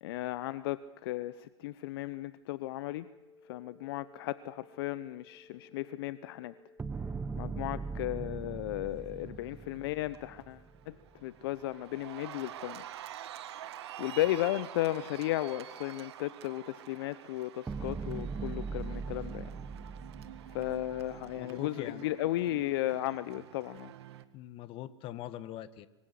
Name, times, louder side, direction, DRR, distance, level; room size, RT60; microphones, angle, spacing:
voice 1, 0.0-3.1 3.5-6.5 7.4-10.9 11.2-12.8 13.5-19.5 20.5-23.9, left 15 dB, 55° left, 16 dB, 0.9 m, -35 dB
sound 1, 2.8-11.3, left 2 dB, 15° left, 6.6 m, -61 dB
sound 2, 6.8-11.1 17.7-21.4, right 4 dB, 10° right, 0.8 m, -40 dB
Cheering, 9.4-9.8 10.1-24.2, right 11 dB, 65° right, 1.9 m, -48 dB
voice 2, 21.4-22.1 24.3-25.9, left 13 dB, 35° left, 15 dB, 1.5 m, -42 dB
25.0 x 24.0 x 7.8 m, 1.1 s
hypercardioid pair, 110°, 15 cm